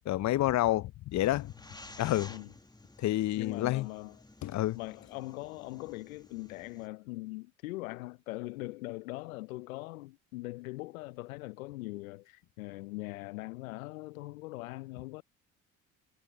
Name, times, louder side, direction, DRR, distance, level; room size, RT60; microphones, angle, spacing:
voice 1, 0.1-1.5 2.0-2.3 3.0-3.9 4.4-4.8, left 15 dB, 45° left, 0.5 m, -29 dB
sound 1, 1.1-6.9, left 2 dB, 10° left, 1.4 m, -53 dB
voice 2, 3.4-4.2 4.7-15.2, left 21 dB, 85° left, 0.7 m, -41 dB
hypercardioid pair, 60°, 41 cm